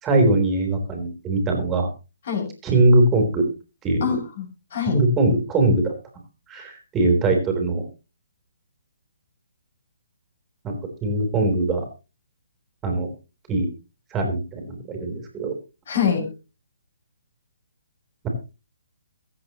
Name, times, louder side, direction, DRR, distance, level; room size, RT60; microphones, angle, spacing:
voice 1, 0.0-1.9 2.6-3.5 3.8-4.2 4.9-5.9 6.5-7.8 10.6-10.7 11.0-11.9 12.8-13.1 13.5-13.7 14.1-15.6, right 2 dB, 15° right, 3 dB, 3.5 m, -21 dB
voice 2, 4.0-5.0 15.9-16.3, left 7 dB, 50° left, 3 dB, 6.4 m, -24 dB
22.5 x 8.2 x 3.0 m, 0.31 s
hypercardioid pair, 150°, 0 cm